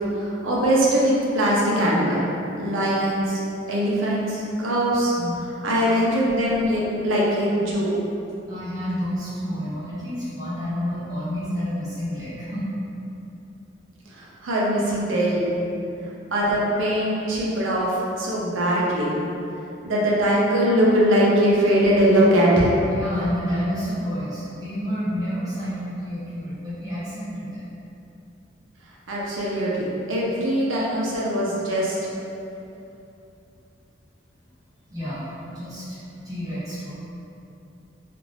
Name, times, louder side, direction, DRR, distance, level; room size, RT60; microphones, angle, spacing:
voice 1, 0.0-2.2 2.6-3.4 3.7-5.1 5.6-7.9 14.1-15.5 16.3-19.1 19.8-22.7 29.1-32.0, equal, 75° right, -5 dB, 0.6 m, -21 dB
voice 2, 8.5-12.7 22.9-27.7 34.9-36.9, equal, 20° right, -12 dB, 0.6 m, -29 dB
2.5 x 2.4 x 3.3 m, 2.8 s
head